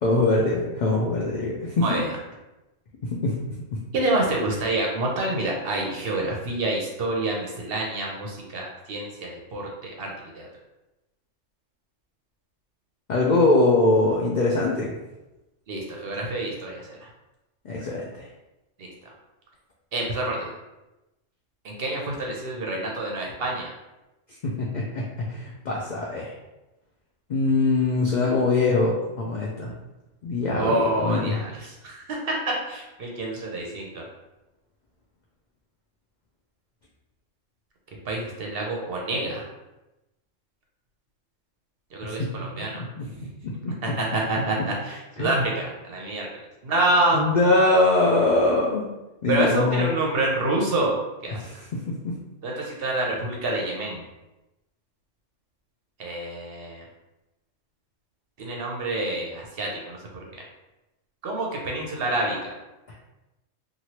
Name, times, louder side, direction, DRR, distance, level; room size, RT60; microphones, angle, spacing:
voice 1, 0.0-1.9 3.0-3.4 3.7-3.8 13.1-14.9 17.6-18.3 24.4-26.3 27.3-29.7 30.2-31.4 42.0-42.3 42.6-42.7 43.0-44.0 44.4-44.7 45.2-45.4 47.1-48.9 49.2-49.9 51.4-52.2, left 2 dB, 85° left, -3 dB, 0.4 m, -23 dB
voice 2, 3.9-10.5 15.7-17.0 18.8-18.9 19.9-20.5 21.6-23.7 30.5-34.0 38.0-39.5 41.9-43.3 43.8-46.3 46.6-47.2 49.3-51.5 52.4-54.0 56.0-56.8 58.4-60.0 60.3-60.4 61.2-62.5, right 2 dB, 60° right, -1 dB, 0.7 m, -27 dB
3.0 x 2.5 x 2.8 m, 1.0 s
omnidirectional pair, 1.3 m